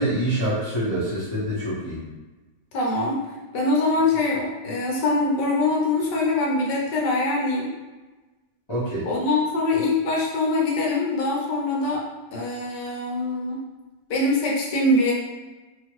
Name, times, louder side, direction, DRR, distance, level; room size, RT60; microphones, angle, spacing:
voice 1, 0.0-2.0 8.7-9.1, right 1 dB, 45° left, -11 dB, 0.3 m, -25 dB
voice 2, 2.7-3.2 3.5-7.7 9.0-12.0 12.3-13.6 14.1-15.1, left 2 dB, 75° left, -3 dB, 1.2 m, -23 dB
2.9 x 2.8 x 2.9 m, 1.2 s
omnidirectional pair, 2.0 m